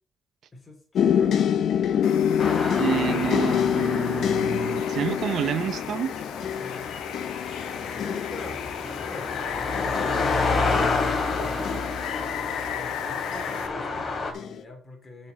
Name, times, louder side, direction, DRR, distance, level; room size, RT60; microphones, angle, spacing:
voice 1, 0.5-1.6 6.6-11.8 12.7-15.3, left 2 dB, 25° left, 3.1 m, -45 dB
sound 1, 0.9-12.8 13.5-14.0 14.3-14.6, left 8 dB, 70° left, 0.7 m, -27 dB
Water, 2.0-13.7, left 9 dB, 85° left, 1.1 m, -36 dB
sound 2, 2.4-14.3, left 3 dB, 45° left, 2.8 m, -30 dB
voice 2, 2.8-6.1, right 9 dB, 70° right, 0.6 m, -29 dB
7.3 x 5.7 x 6.3 m
cardioid pair, 90°, 0 cm